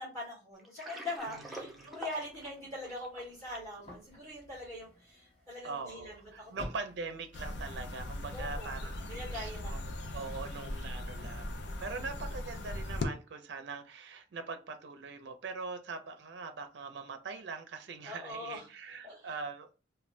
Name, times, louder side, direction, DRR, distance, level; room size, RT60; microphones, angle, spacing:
voice 1, 0.0-6.7 8.3-10.1 18.0-18.7 19.0-19.4, left 1 dB, 20° left, 1.4 m, -43 dB
Water, 0.6-3.8, right 1 dB, ahead, 0.6 m, -46 dB
sound 1, 1.2-9.7, equal, 35° left, 1.2 m, -54 dB
voice 2, 1.4-2.0 5.6-19.7, right 4 dB, 70° right, 0.4 m, -42 dB
sound 2, 7.3-13.1, left 1 dB, 70° left, 0.5 m, -39 dB
3.2 x 2.2 x 2.5 m
head